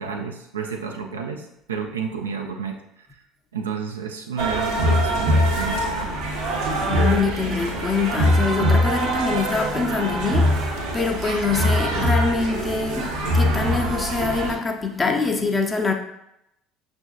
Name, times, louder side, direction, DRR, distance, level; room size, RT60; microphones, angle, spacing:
voice 1, 0.0-3.2 3.5-6.1, right 5 dB, 80° right, 0.4 m, -31 dB
sound 1, 4.4-14.5, equal, 60° right, 0.8 m, -23 dB
voice 2, 6.8-10.6 10.9-15.9, left 4 dB, 20° left, 0.5 m, -24 dB
6.1 x 2.6 x 2.3 m
figure-of-eight pair, 65°, 0 cm